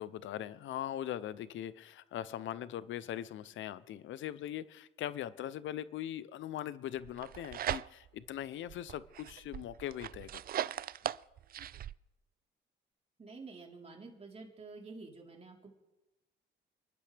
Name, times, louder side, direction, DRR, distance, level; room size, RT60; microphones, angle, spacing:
voice 1, 0.0-10.7, left 11 dB, 75° left, 0.6 m, -41 dB
sound 1, 7.0-8.2 8.7-11.9, right 11 dB, 50° right, 0.4 m, -39 dB
voice 2, 13.2-15.7, right 3 dB, 30° right, 3.8 m, -49 dB
29.5 x 11.5 x 3.4 m
cardioid pair, 90°, 20 cm